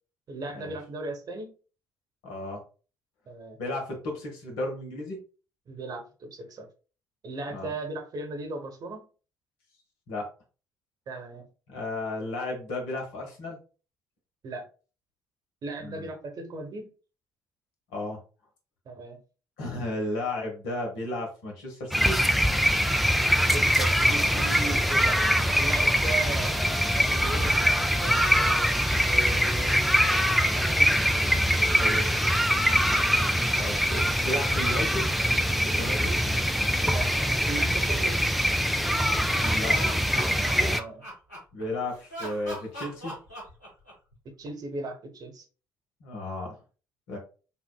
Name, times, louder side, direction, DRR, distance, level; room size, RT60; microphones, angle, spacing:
voice 1, 0.3-1.5 3.3-3.6 5.7-6.7 7.2-9.1 11.1-11.5 14.4-14.7 15.6-16.9 18.8-19.2 23.3-26.6 27.0-28.7 29.1-29.9 30.5-31.1 32.9-33.3 36.8-37.1 37.4-38.3 40.6-41.1 44.2-45.4, right 2 dB, 45° right, 4 dB, 1.0 m, -37 dB
voice 2, 2.2-2.6 3.6-5.2 7.5-7.7 10.1-10.3 11.7-13.6 15.8-16.1 17.9-18.2 19.6-22.2 31.7-32.1 33.6-35.1 35.6-36.2 39.4-39.8 41.5-43.1 46.0-46.6 47.1-47.2, left 1 dB, 70° left, 1 dB, 1.2 m, -34 dB
sound 1, 21.9-40.8, equal, ahead, 0.4 m, -23 dB
Trumpet, 23.3-31.6, equal, 20° left, 1.6 m, -42 dB
Laughter, 39.2-41.6 42.1-44.1, equal, 90° left, 1.4 m, -38 dB
5.6 x 2.4 x 2.2 m, 0.35 s
figure-of-eight pair, 50°, 9 cm